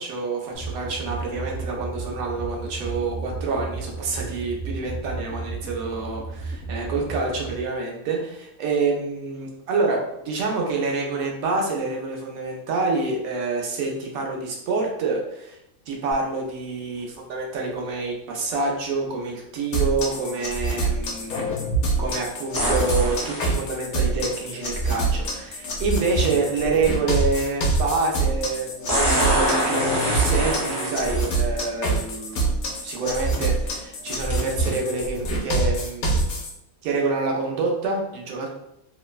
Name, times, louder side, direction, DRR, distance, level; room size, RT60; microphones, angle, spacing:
voice 1, 0.0-15.6 15.9-21.5 22.0-36.4 36.8-38.5, right 3 dB, 85° right, 0 dB, 1.1 m, -27 dB
sound 1, 0.5-7.6, right 3 dB, 55° left, 0.9 m, -33 dB
sound 2, 19.7-36.5, right 2 dB, 90° left, 1.1 m, -25 dB
sound 3, 22.6-23.5 25.5-25.6 28.9-31.4 32.3-32.4 33.1-33.3 34.3-34.4, equal, 20° right, 0.8 m, -24 dB
3.1 x 2.1 x 2.2 m, 0.82 s
omnidirectional pair, 1.4 m